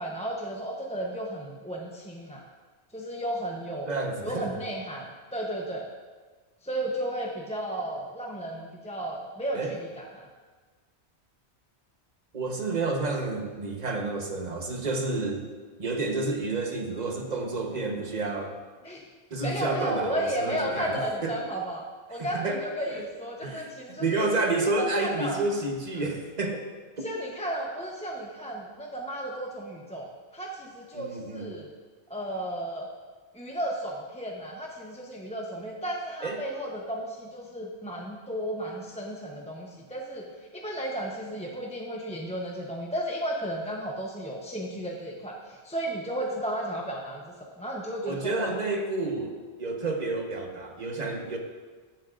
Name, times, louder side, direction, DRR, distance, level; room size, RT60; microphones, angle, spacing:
voice 1, 0.0-2.4 2.9-3.9 4.2-5.9 6.6-10.3 18.8-19.0 19.4-21.8 22.1-24.3 24.6-25.4 27.0-31.7 32.1-32.9 33.3-48.5, right 1 dB, 5° left, -1 dB, 0.8 m, -34 dB
voice 2, 3.9-4.5 9.5-9.8 12.3-15.5 15.8-18.5 19.3-21.4 22.2-23.0 23.4-23.7 24.0-26.7 27.0-27.1 30.9-31.5 36.2-36.4 48.0-51.4, right 2 dB, 40° right, 2 dB, 1.3 m, -30 dB
15.5 x 10.5 x 2.6 m, 1.4 s
omnidirectional pair, 1.1 m